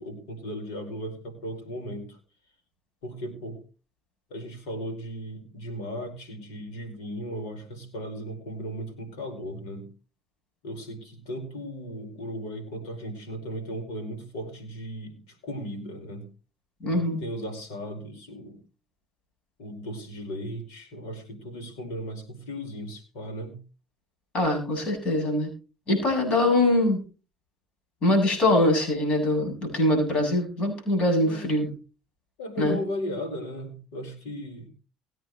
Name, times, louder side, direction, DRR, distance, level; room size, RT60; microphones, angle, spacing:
voice 1, 0.0-2.2 3.0-3.6 4.3-9.9 10.6-16.3 16.9-18.6 19.6-23.5 31.2-31.6 32.4-34.7, equal, 85° left, 6 dB, 4.9 m, -36 dB
voice 2, 16.8-17.2 24.3-25.5 25.9-27.0 28.0-31.7 32.6-32.8, left 1 dB, 55° left, 3 dB, 7.7 m, -23 dB
20.5 x 9.2 x 3.1 m, 0.35 s
hypercardioid pair, 70°, 2 cm